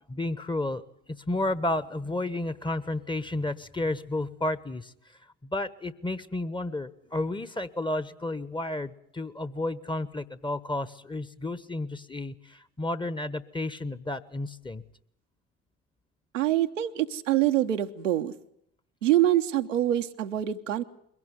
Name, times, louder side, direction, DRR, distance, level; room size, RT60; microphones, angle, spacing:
voice 1, 0.1-0.8 1.1-4.9 5.4-14.8, left 2 dB, 15° left, 16 dB, 1.2 m, -32 dB
voice 2, 16.3-18.3 19.0-20.8, right 13 dB, 80° right, 5 dB, 1.0 m, -25 dB
22.5 x 17.0 x 9.4 m, 0.72 s
figure-of-eight pair, 55°, 37 cm